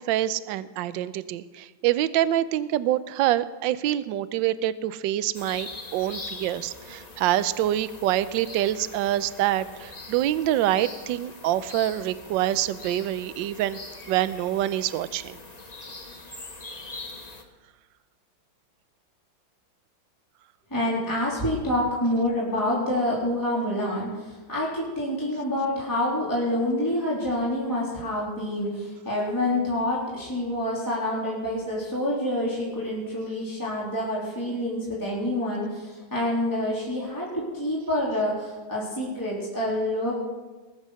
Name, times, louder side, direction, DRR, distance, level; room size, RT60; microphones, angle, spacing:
voice 1, 0.0-13.8 14.1-15.4, right 13 dB, 75° right, 15 dB, 1.2 m, -26 dB
sound 1, 5.3-17.4, left 3 dB, 25° left, 1.1 m, -42 dB
voice 2, 20.7-40.2, left 1 dB, 10° left, -6 dB, 3.2 m, -27 dB
20.0 x 8.3 x 6.3 m, 1.2 s
omnidirectional pair, 2.2 m